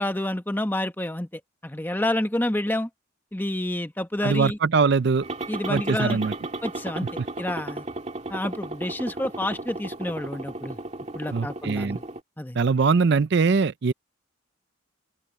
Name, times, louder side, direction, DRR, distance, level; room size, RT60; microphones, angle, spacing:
voice 1, 0.0-2.9 3.3-4.6 5.5-6.3 6.6-7.1 7.4-7.8 8.3-10.8 11.1-12.0 12.4-12.6, left 1 dB, 10° left, 1.0 m, -29 dB
voice 2, 4.2-5.3 5.7-6.3 11.3-12.0 12.5-13.9, right 5 dB, 55° right, 0.5 m, -22 dB
sound 1, 5.2-12.2, right 2 dB, 30° right, 2.3 m, -35 dB
open air
head